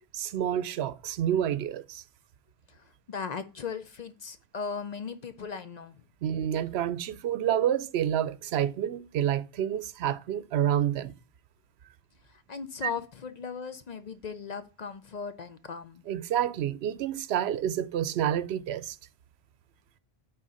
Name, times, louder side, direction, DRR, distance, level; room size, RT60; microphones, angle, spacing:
voice 1, 0.1-2.0 6.2-11.1 12.8-12.9 16.1-19.0, right 10 dB, 85° right, 0.8 m, -28 dB
voice 2, 2.7-6.0 12.3-16.0, left 6 dB, 50° left, 0.6 m, -38 dB
6.3 x 4.1 x 5.5 m
omnidirectional pair, 1.1 m